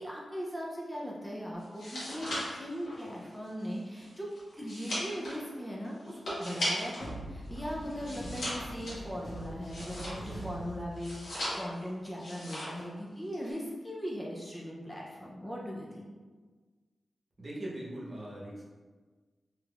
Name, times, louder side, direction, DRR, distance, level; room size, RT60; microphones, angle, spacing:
voice 1, 0.0-4.3 4.5-16.1, equal, 5° left, -4 dB, 0.4 m, -39 dB
sound 1, 1.6-7.1 7.4-10.5 10.9-11.8 12.2-12.9 13.1-13.5, equal, 85° left, 1.2 m, -38 dB
sound 2, 7.0-11.5, right 1 dB, 45° left, 1.2 m, -43 dB
voice 2, 17.4-18.6, right 1 dB, 40° right, -5 dB, 0.9 m, -40 dB
3.5 x 2.9 x 2.3 m, 1.4 s
wide cardioid pair, 100°, 0 cm